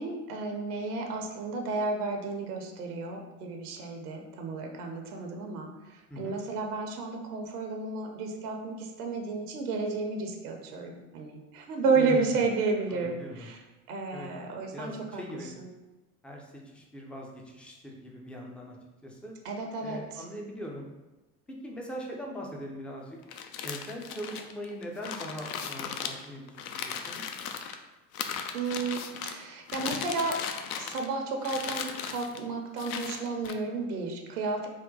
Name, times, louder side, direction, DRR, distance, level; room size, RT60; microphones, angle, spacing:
voice 1, 0.0-13.6 13.9-15.7 19.4-20.2 28.5-30.4 30.8-34.7, right 4 dB, 75° right, 2 dB, 0.8 m, -32 dB
voice 2, 12.0-12.4 12.9-13.5 14.1-14.3 14.7-15.5 16.2-18.8 19.0-19.3 19.8-20.9 21.5-23.2 23.6-27.2, equal, 5° left, -1 dB, 0.3 m, -41 dB
sound 1, 23.2-27.7 28.1-29.4 29.7-31.1 31.4-32.4 32.8-33.5, left 7 dB, 65° left, 0.5 m, -37 dB
3.7 x 2.1 x 3.8 m, 1.1 s
figure-of-eight pair, 75°, 46 cm